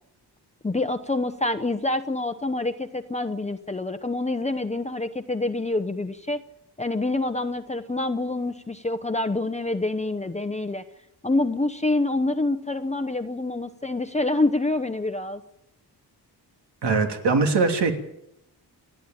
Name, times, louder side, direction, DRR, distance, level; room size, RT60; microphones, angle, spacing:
voice 1, 0.6-6.4 6.8-10.8 11.2-15.4, left 2 dB, 15° left, 7 dB, 0.9 m, -26 dB
voice 2, 16.8-17.9, right 4 dB, 75° right, 4 dB, 3.0 m, -21 dB
29.0 x 10.0 x 9.0 m, 0.84 s
wide cardioid pair, 100°, 41 cm